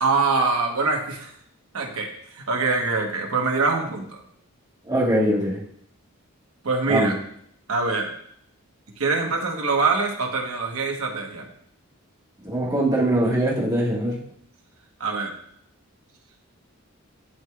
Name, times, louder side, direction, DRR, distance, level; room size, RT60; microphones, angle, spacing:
voice 1, 0.0-1.3 1.7-4.2 6.6-7.1 7.7-8.1 9.0-11.5 15.0-15.3, right 4 dB, 80° right, 2 dB, 1.2 m, -24 dB
voice 2, 4.9-5.6 6.9-7.1 12.4-14.2, right 1 dB, 20° right, -5 dB, 1.5 m, -22 dB
11.5 x 4.7 x 2.3 m, 0.67 s
head